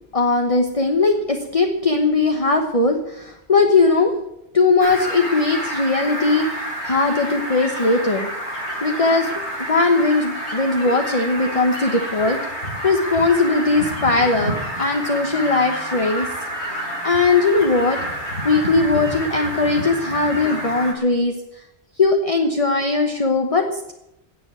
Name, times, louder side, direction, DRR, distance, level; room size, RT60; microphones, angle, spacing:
voice 1, 0.1-4.1 4.5-8.3 8.8-9.3 9.6-16.3 16.7-16.8 17.0-18.0 18.4-21.6 22.0-23.9, left 3 dB, 30° left, 4 dB, 1.2 m, -19 dB
Fowl, 4.8-20.9, equal, 85° left, 3.8 m, -29 dB
17.5 x 6.9 x 9.6 m, 0.86 s
omnidirectional pair, 1.1 m